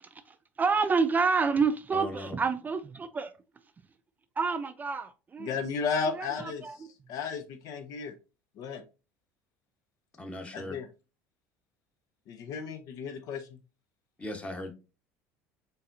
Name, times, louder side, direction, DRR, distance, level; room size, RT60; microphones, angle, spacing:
voice 1, 0.0-3.3 4.4-5.5 6.1-6.8, right 4 dB, 25° right, 0.4 m, -29 dB
voice 2, 1.9-2.4 10.2-10.8 14.2-14.7, left 1 dB, 15° left, 1.2 m, -38 dB
voice 3, 5.4-6.6 7.1-8.1 8.6-8.8 10.5-10.9 12.3-13.6, left 5 dB, 60° left, 0.6 m, -34 dB
4.0 x 3.8 x 2.6 m
hypercardioid pair, 75°, 7 cm